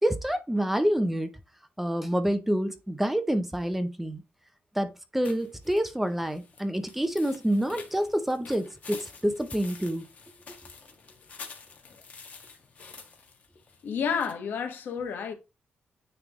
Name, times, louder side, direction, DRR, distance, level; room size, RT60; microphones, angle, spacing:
voice 1, 0.0-1.3 1.8-4.2 4.7-10.0, equal, 5° right, 0.6 m, -27 dB
sound 1, 5.2-14.3, left 5 dB, 45° left, 1.6 m, -48 dB
voice 2, 13.8-15.3, left 6 dB, 75° left, 1.5 m, -30 dB
9.5 x 3.4 x 3.6 m
wide cardioid pair, 170°, 3 cm